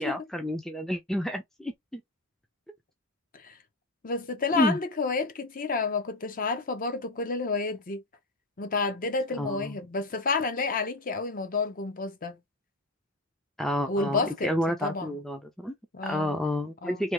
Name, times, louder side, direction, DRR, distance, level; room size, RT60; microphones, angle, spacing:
voice 1, 0.0-2.0 4.5-4.8 9.4-9.8 13.6-15.8 16.0-17.1, equal, ahead, 0.4 m, -30 dB
voice 2, 4.0-8.0 8.6-12.4 13.9-15.1 15.9-16.4 16.8-17.1, left 4 dB, 40° left, 0.7 m, -30 dB
3.3 x 2.3 x 2.9 m
head